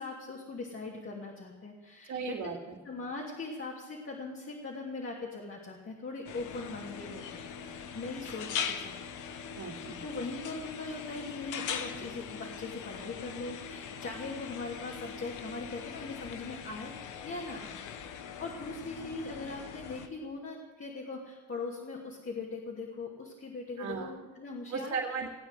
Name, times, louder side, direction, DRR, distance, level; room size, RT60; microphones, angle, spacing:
voice 1, 0.0-2.6 2.8-9.0 10.0-16.9 17.2-25.0, left 3 dB, 45° left, -3 dB, 3.0 m, -40 dB
voice 2, 2.1-2.8 9.5-10.0 23.8-24.1 24.7-25.4, right 5 dB, 70° right, -2 dB, 2.4 m, -36 dB
sound 1, 6.2-20.1, left 7 dB, 85° left, 1.1 m, -41 dB
18.5 x 9.0 x 7.6 m, 1.3 s
cardioid pair, 90°, 30 cm